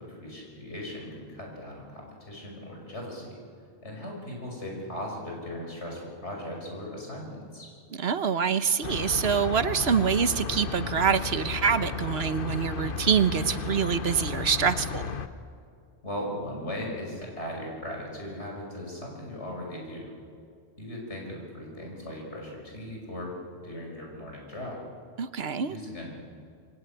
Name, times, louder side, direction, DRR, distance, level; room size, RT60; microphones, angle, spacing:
voice 1, 0.1-3.4 3.8-7.7 16.0-20.1 20.8-23.3 23.6-24.8 25.7-26.1, left 1 dB, 80° left, -1 dB, 6.1 m, -38 dB
voice 2, 8.0-15.0 25.2-25.8, right 7 dB, 65° right, 12 dB, 1.2 m, -25 dB
sound 1, 8.8-15.3, left 5 dB, 55° left, 1.1 m, -34 dB
27.5 x 22.0 x 9.0 m, 2.3 s
omnidirectional pair, 1.2 m